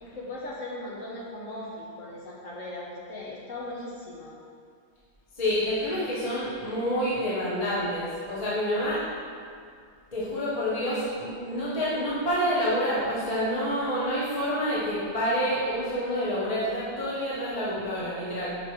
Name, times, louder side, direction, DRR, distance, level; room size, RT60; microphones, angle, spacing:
voice 1, 0.0-4.4, left 1 dB, 75° left, -4 dB, 1.7 m, -38 dB
voice 2, 5.4-9.0 10.1-18.6, equal, 30° left, -9 dB, 1.4 m, -28 dB
5.8 x 5.3 x 4.9 m, 2.2 s
omnidirectional pair, 1.4 m